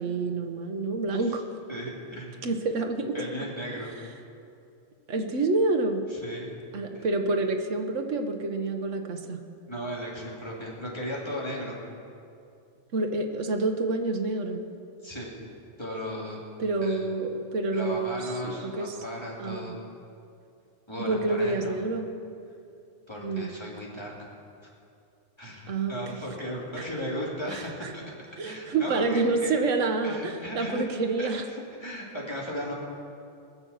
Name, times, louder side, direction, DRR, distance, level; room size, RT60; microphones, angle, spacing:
voice 1, 0.0-1.4 2.4-3.3 3.7-3.9 5.1-6.0 6.7-9.4 12.9-14.6 16.6-19.0 19.4-19.7 21.0-22.1 23.2-23.5 25.7-26.2 26.7-26.9 27.5-27.9 28.4-31.4, right 3 dB, 85° right, 4 dB, 1.3 m, -28 dB
voice 2, 1.7-2.4 3.1-3.9 6.1-6.5 6.9-7.1 9.7-11.8 15.0-15.3 15.8-16.5 16.8-17.0 17.7-19.8 20.9-21.7 23.1-24.3 25.4-28.0 28.4-29.2 30.0-30.8 31.2-32.7, equal, 20° left, -4 dB, 2.7 m, -36 dB
20.0 x 7.0 x 7.1 m, 2.6 s
omnidirectional pair, 1.2 m